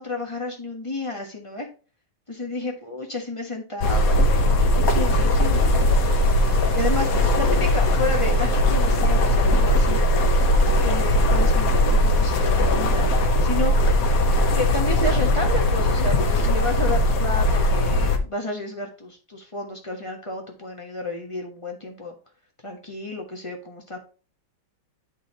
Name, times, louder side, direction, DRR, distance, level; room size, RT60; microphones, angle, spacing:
voice 1, 0.0-1.7 2.3-6.3 6.7-10.1 10.8-13.7 14.5-22.1 22.6-24.0, left 2 dB, 20° left, 1 dB, 0.9 m, -31 dB
sound 1, 3.8-18.2, left 1 dB, 55° left, 1.1 m, -19 dB
sound 2, 5.5-13.1 13.6-13.7 14.6-14.7, right 2 dB, 85° right, 4.7 m, -44 dB
11.0 x 4.1 x 2.8 m, 0.36 s
omnidirectional pair, 2.3 m